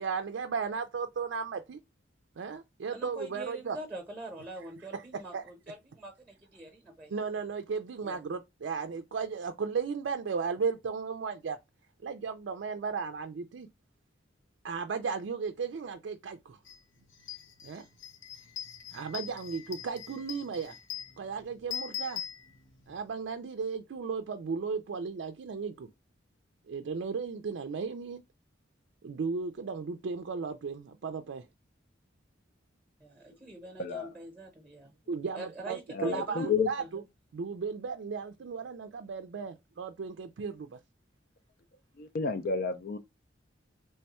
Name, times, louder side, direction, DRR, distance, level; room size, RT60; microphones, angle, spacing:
voice 1, 0.0-1.8 2.4-3.8 4.9-5.5 7.1-11.6 12.0-13.7 14.6-16.6 17.6-17.9 18.9-20.8 21.2-22.2 22.9-25.9 26.7-28.2 29.0-31.5 35.1-37.0 37.3-40.8, right 5 dB, 70° right, 0.4 m, -35 dB
voice 2, 2.9-7.1 8.0-8.3 33.0-34.9 35.3-36.5 36.8-37.0, right 2 dB, 10° right, 0.8 m, -44 dB
sound 1, 16.7-16.8 17.1-23.0, left 10 dB, 90° left, 0.8 m, -42 dB
voice 3, 33.8-34.1 35.9-36.7 42.0-43.0, left 5 dB, 50° left, 0.4 m, -31 dB
3.3 x 2.2 x 4.1 m
head